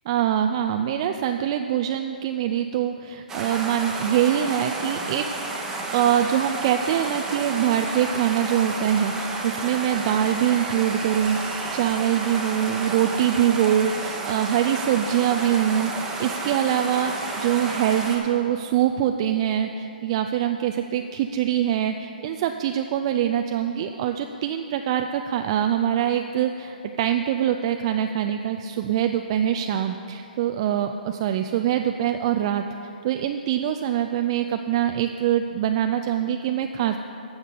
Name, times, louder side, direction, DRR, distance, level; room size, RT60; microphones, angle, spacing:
voice 1, 0.1-5.3 5.9-37.0, right 10 dB, 35° right, 6 dB, 0.3 m, -24 dB
sound 1, 3.3-18.2, right 3 dB, 10° right, 1.0 m, -31 dB
sound 2, 6.1-13.5, right 3 dB, 85° right, 1.5 m, -46 dB
11.5 x 7.2 x 5.3 m, 2.7 s
hypercardioid pair, 155°, 5 cm